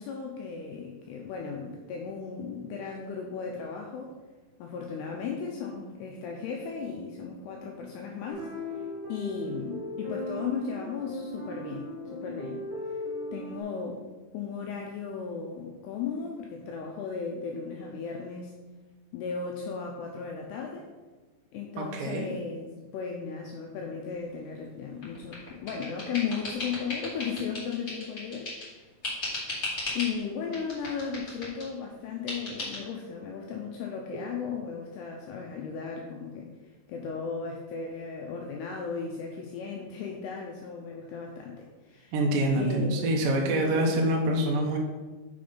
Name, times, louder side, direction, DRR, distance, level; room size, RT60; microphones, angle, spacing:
voice 1, 0.0-4.1 4.6-8.8 9.1-12.6 13.3-14.0 14.3-18.5 19.1-20.9 21.5-28.9 29.9-42.1 42.5-43.0 43.5-43.9, left 6 dB, 85° left, 0 dB, 2.3 m, -36 dB
sound 1, 8.3-13.6, left 1 dB, 45° right, 2.8 m, -37 dB
voice 2, 21.8-22.3 42.1-44.8, right 1 dB, 85° right, 0 dB, 1.9 m, -26 dB
sound 2, 25.0-28.7 29.0-30.1 30.5-31.7 32.3-32.8, left 2 dB, 30° left, 1.7 m, -36 dB
6.9 x 5.0 x 5.5 m, 1.3 s
omnidirectional pair, 5.5 m